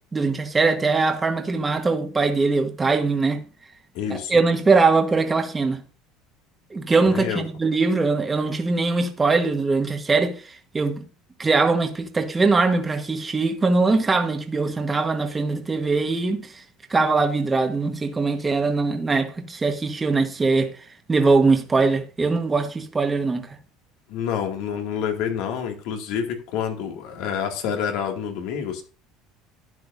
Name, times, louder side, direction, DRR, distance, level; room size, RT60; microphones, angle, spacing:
voice 1, 0.1-3.4 4.1-5.8 6.7-11.0 11.4-16.6 16.9-20.7 21.1-23.6, right 3 dB, 15° right, 1.3 m, -21 dB
voice 2, 3.9-4.4 7.0-7.4 24.1-28.8, left 8 dB, 70° left, 2.1 m, -28 dB
12.0 x 9.5 x 2.6 m
cardioid pair, 135°, 0 cm